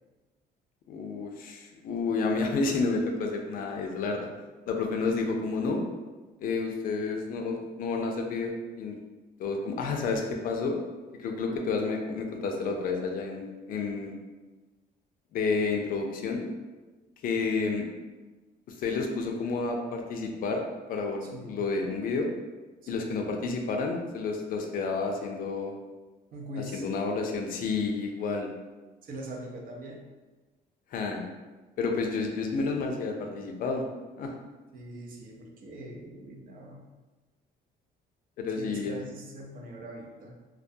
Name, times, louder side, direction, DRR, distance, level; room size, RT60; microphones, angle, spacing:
voice 1, 0.9-4.3 4.7-5.8 6.4-9.0 9.4-10.8 11.1-14.1 15.3-16.5 17.2-17.9 18.7-20.6 20.9-22.3 22.9-25.7 26.6-28.5 30.9-31.3 31.8-33.8 34.2-34.3 38.4-39.0, left 4 dB, 55° left, 2 dB, 0.4 m, -30 dB
voice 2, 21.2-21.6 22.8-23.3 26.3-26.9 29.0-30.1 34.7-36.9 38.6-40.3, right 1 dB, 55° right, -1 dB, 0.6 m, -42 dB
2.2 x 2.2 x 2.6 m, 1.2 s
cardioid pair, 110°, 17 cm